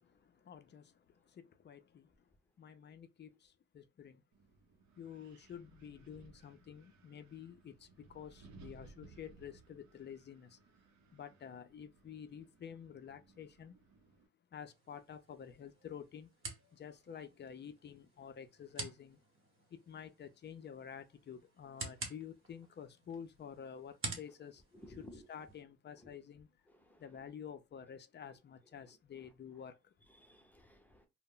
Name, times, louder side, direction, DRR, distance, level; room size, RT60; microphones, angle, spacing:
voice 1, 0.0-2.3 2.6-4.2 5.0-10.6 11.1-13.8 14.5-16.3 16.7-19.2 19.7-24.6 25.0-26.5 27.0-29.9, left 8 dB, 35° left, 0.4 m, -50 dB
Wind, 4.3-14.3, right 3 dB, 75° right, 0.6 m, -61 dB
sound 1, 14.7-25.6, right 3 dB, 45° right, 0.9 m, -50 dB
voice 2, 24.7-25.3 26.0-26.2 26.7-27.2 28.9-29.3 30.1-31.1, left 1 dB, 5° left, 0.7 m, -57 dB
2.1 x 2.0 x 3.6 m
cardioid pair, 90°, 30 cm